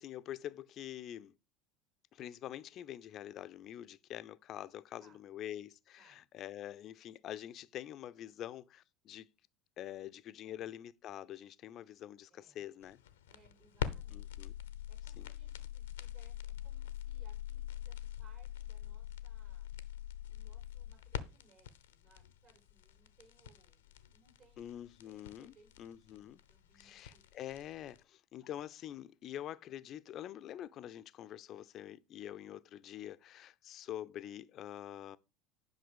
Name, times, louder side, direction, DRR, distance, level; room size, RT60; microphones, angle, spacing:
voice 1, 0.0-1.3 2.1-9.3 9.8-13.0 14.1-14.5 15.2-15.3 24.6-26.4 26.8-35.2, left 11 dB, 45° left, 0.7 m, -46 dB
voice 2, 10.3-10.7 12.3-12.6 13.3-14.3 14.9-19.7 20.3-23.8 24.1-27.2 28.3-28.6, right 4 dB, 50° right, 6.4 m, -68 dB
sound 1, 12.8-28.0, left 11 dB, 75° left, 0.8 m, -44 dB
11.0 x 5.8 x 5.1 m
figure-of-eight pair, 70°, 0 cm